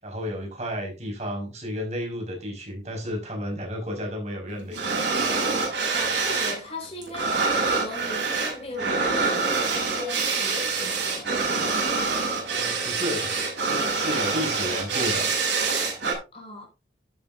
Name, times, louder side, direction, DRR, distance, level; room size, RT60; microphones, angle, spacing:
voice 1, 0.0-4.8 12.4-15.3, equal, 40° right, 5.2 m, -32 dB
sound 1, 4.7-6.6 6.8-16.1, right 4 dB, 85° right, 6.1 m, -26 dB
voice 2, 5.9-7.4 7.6-11.3 16.3-16.7, left 2 dB, 35° left, 5.2 m, -38 dB
12.5 x 9.6 x 2.7 m
head